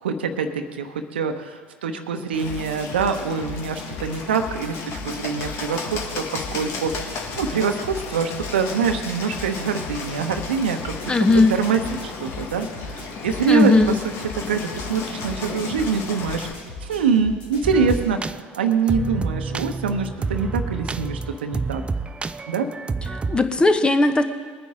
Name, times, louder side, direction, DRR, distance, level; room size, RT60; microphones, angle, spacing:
voice 1, 0.0-12.7 12.9-13.7 14.3-16.5 16.8-18.2 18.6-21.8 22.5-22.7, right 5 dB, 80° right, 6 dB, 1.0 m, -24 dB
Bird, 2.3-16.5, left 4 dB, 50° left, 1.7 m, -34 dB
sound 1, 2.4-18.1, left 2 dB, 75° left, 2.9 m, -38 dB
voice 2, 11.1-11.5 13.5-14.0 23.1-24.2, left 2 dB, 15° left, 8 dB, 1.1 m, -17 dB
sound 2, 17.6-23.4, right 4 dB, 20° right, 0.5 m, -29 dB
21.0 x 9.7 x 3.7 m, 1.6 s
figure-of-eight pair, 65°, 6 cm